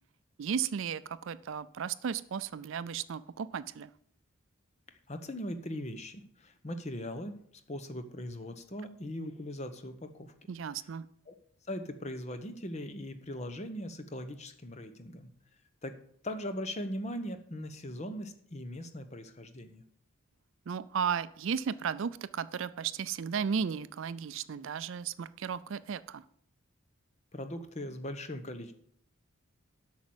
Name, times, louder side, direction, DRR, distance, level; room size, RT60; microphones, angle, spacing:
voice 1, 0.4-3.9 10.5-11.1 20.7-26.2, right 7 dB, 60° right, 16 dB, 0.4 m, -34 dB
voice 2, 5.1-7.4 7.7-10.3 11.3-11.4 11.7-15.3 15.8-15.9 16.2-19.8 27.3-28.7, left 1 dB, 30° left, 9 dB, 0.9 m, -40 dB
8.4 x 6.1 x 7.8 m, 0.65 s
head